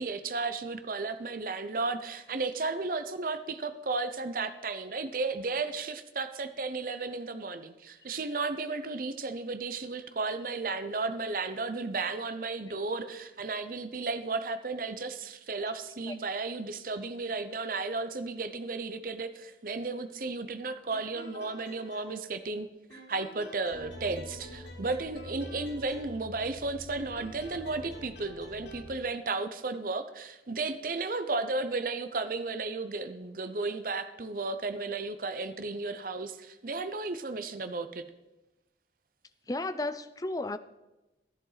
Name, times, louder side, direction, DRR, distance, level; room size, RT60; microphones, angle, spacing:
voice 1, 0.0-38.0, right 3 dB, 50° right, 10 dB, 0.7 m, -34 dB
sound 1, 20.9-22.6 22.9-26.5 26.9-28.9, equal, 85° left, 3.2 m, -50 dB
sound 2, 23.7-28.9, left 1 dB, 60° left, 1.4 m, -47 dB
voice 2, 39.5-40.6, left 2 dB, 20° left, 12 dB, 0.4 m, -33 dB
12.5 x 11.0 x 4.0 m, 1.0 s
head